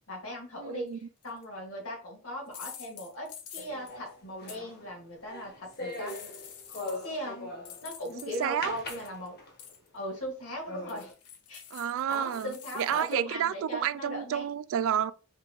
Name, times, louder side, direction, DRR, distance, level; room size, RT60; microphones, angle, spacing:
voice 1, 0.1-6.2 7.0-9.4 9.9-11.1 11.5-11.6 12.1-14.5, equal, 65° left, 2.0 m, -39 dB
voice 2, 0.6-1.0 8.2-8.8 11.7-15.1, right 9 dB, 60° right, 0.3 m, -30 dB
sound 1, 1.2-1.4 2.5-4.0 4.5-4.6 5.7-7.2 7.6-9.3 9.6-9.9 10.9-13.1, left 8 dB, 90° left, 0.8 m, -47 dB
sound 2, 3.6-8.0 8.6-9.7 10.2-10.3 10.7-11.1, left 2 dB, 45° left, 1.1 m, -41 dB
4.9 x 2.9 x 3.0 m
head